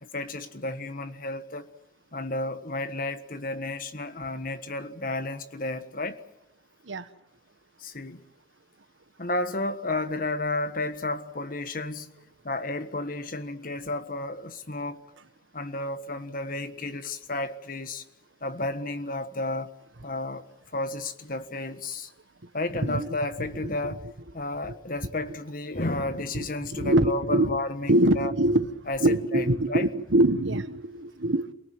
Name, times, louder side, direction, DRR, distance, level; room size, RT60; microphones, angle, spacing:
voice 1, 0.0-1.7 2.1-6.2 7.8-8.2 9.2-12.1 12.4-15.0 15.5-18.0 18.4-19.7 20.0-20.5 20.7-22.1 22.5-24.1 24.3-28.3 28.9-29.9, left 2 dB, 50° left, 1.5 m, -32 dB
voice 2, 22.8-23.1 26.3-26.5 26.7-27.6 27.9-28.7 29.0-31.5, right 1 dB, 90° right, 1.4 m, -23 dB
28.0 x 18.5 x 7.8 m
head